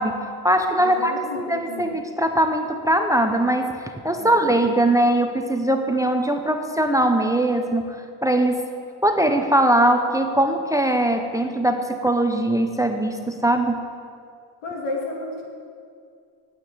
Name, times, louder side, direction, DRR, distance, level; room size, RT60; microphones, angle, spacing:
voice 1, 0.0-8.6 9.0-13.8, right 1 dB, 5° right, 5 dB, 0.7 m, -21 dB
voice 2, 0.8-1.9 4.2-4.5 14.6-15.4, left 3 dB, 85° left, -1 dB, 3.1 m, -32 dB
9.0 x 9.0 x 9.7 m, 2.2 s
cardioid pair, 125°, 47 cm